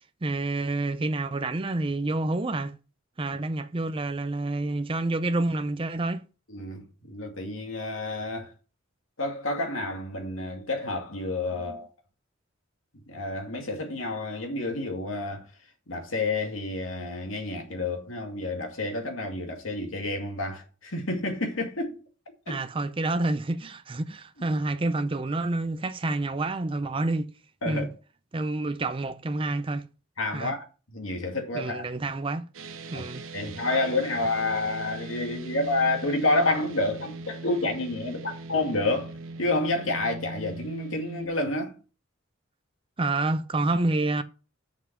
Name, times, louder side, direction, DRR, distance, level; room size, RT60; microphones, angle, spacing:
voice 1, 0.0-2.7 3.2-6.2 11.7-11.8 22.5-27.3 27.6-27.9 28.3-29.8 30.3-30.5 31.5-32.4 32.9-33.2 43.0-44.2, right 2 dB, 25° right, 0.5 m, -28 dB
voice 2, 6.5-8.5 9.2-11.9 13.1-15.5 15.9-22.0 22.5-22.6 24.5-24.6 27.6-27.9 30.2-30.6 30.9-31.8 32.9-33.1 33.3-41.7, left 2 dB, 85° left, 2.4 m, -29 dB
sound 1, 32.5-41.3, right 2 dB, 85° right, 1.0 m, -40 dB
7.2 x 5.6 x 6.0 m
head